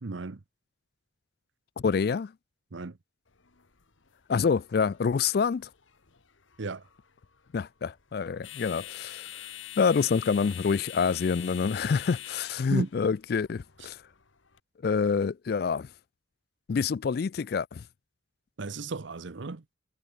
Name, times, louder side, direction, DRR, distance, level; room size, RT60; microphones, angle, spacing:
voice 1, 0.0-0.4 2.7-2.9 6.6-6.8 12.7-12.9 18.6-19.6, right 3 dB, 70° right, 0.8 m, -34 dB
voice 2, 1.8-2.3 4.3-5.7 7.5-9.3 9.8-14.0 14.8-15.9 16.7-17.8, left 5 dB, 50° left, 0.3 m, -27 dB
sound 1, 3.3-14.6, left 13 dB, 75° left, 1.4 m, -46 dB
head